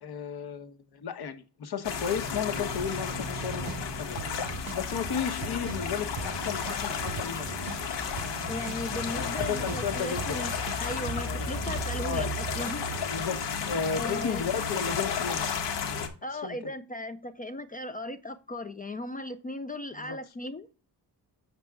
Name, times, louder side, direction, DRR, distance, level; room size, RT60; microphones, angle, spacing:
voice 1, 0.0-4.2 4.7-7.5 9.1-10.4 11.2-11.6 12.0-12.3 13.1-13.4 13.7-15.5 15.8-16.7 20.0-20.2, left 6 dB, 65° left, 1.1 m, -34 dB
sound 1, 1.8-16.1, left 5 dB, 90° left, 1.5 m, -33 dB
sound 2, 3.4-3.8 4.2-7.8 8.2-11.8 12.2-13.2, right 9 dB, 55° right, 0.6 m, -41 dB
voice 2, 8.5-12.9 13.9-14.4 16.2-20.7, left 2 dB, 20° left, 0.3 m, -37 dB
7.3 x 6.9 x 3.6 m
wide cardioid pair, 160°, 41 cm